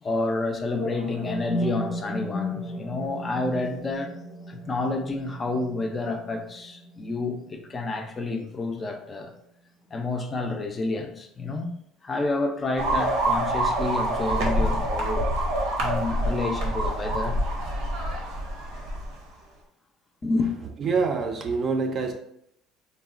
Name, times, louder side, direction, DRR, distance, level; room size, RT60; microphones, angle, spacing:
voice 1, 0.0-4.1 4.5-9.3 9.9-11.7 12.0-15.3 15.8-17.4 20.2-20.5, left 2 dB, 25° left, 0.4 m, -29 dB
sound 1, 0.7-8.7, left 1 dB, 80° left, 0.6 m, -35 dB
sound 2, 12.8-19.1, right 1 dB, 80° right, 0.7 m, -26 dB
voice 2, 20.8-22.1, right 4 dB, 40° right, 0.4 m, -25 dB
3.5 x 2.0 x 2.4 m
cardioid pair, 110°, 0 cm